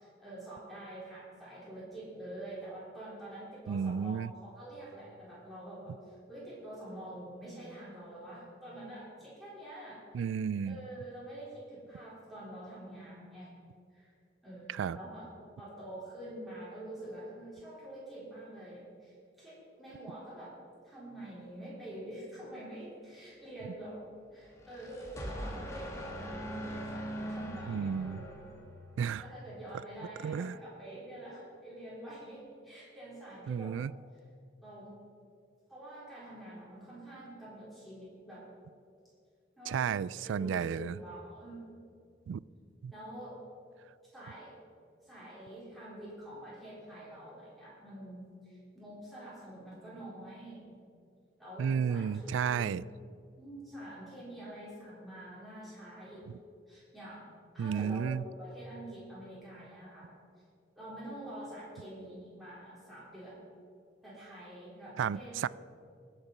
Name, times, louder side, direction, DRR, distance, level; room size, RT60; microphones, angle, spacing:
voice 1, 0.0-10.2 10.6-13.5 13.9-14.1 14.4-15.3 15.6-20.6 20.8-28.6 29.2-33.8 34.6-35.0 35.7-38.5 39.6-40.0 40.2-41.6 42.9-43.4 44.1-44.5 45.0-50.7 51.4-52.7 53.4-56.3 56.7-57.3 57.5-60.1 60.8-63.5 64.0-65.4, right 1 dB, ahead, -8 dB, 3.7 m, -46 dB
voice 2, 3.7-4.3 10.1-10.8 14.7-15.0 27.7-28.2 29.0-29.2 30.2-30.5 33.5-33.9 39.7-41.0 42.3-42.4 42.8-42.9 51.6-52.8 57.6-58.2 65.0-65.5, right 7 dB, 85° right, 21 dB, 0.3 m, -32 dB
sound 1, 24.5-29.0, equal, 15° left, 1.5 m, -41 dB
19.5 x 6.7 x 5.6 m, 2.3 s
head